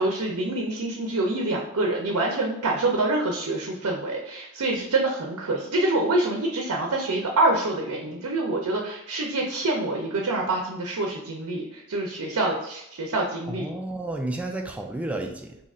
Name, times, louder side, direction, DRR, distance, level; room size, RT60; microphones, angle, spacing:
voice 1, 0.0-13.7, right 2 dB, 80° right, 0 dB, 0.6 m, -26 dB
voice 2, 13.5-15.6, right 2 dB, 5° right, 2 dB, 0.3 m, -31 dB
2.7 x 2.4 x 4.1 m, 0.81 s
head